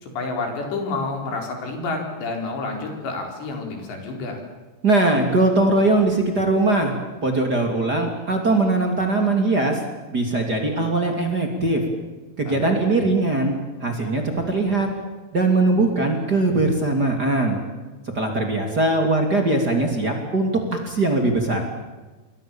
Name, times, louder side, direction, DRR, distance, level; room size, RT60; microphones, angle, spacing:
voice 1, 0.0-4.4 12.4-12.7, left 3 dB, 85° left, 3 dB, 6.9 m, -29 dB
voice 2, 4.8-6.9 7.2-9.8 10.1-11.8 12.4-14.9 15.3-17.6 18.1-21.7, right 2 dB, 25° right, 3 dB, 3.1 m, -21 dB
27.5 x 23.5 x 7.3 m, 1.2 s
omnidirectional pair, 4.9 m